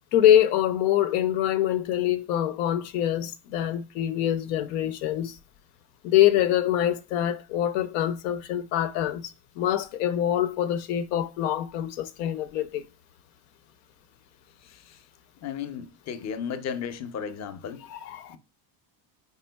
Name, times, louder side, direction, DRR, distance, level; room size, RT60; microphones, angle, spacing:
voice 1, 0.1-5.3 6.0-9.3 9.6-12.8 17.9-18.4, left 11 dB, 85° left, 0.6 m, -24 dB
voice 2, 14.6-15.0 15.4-17.8 18.3-18.4, left 7 dB, 35° left, 0.6 m, -35 dB
4.3 x 3.6 x 2.2 m
supercardioid pair, 85°, 49 cm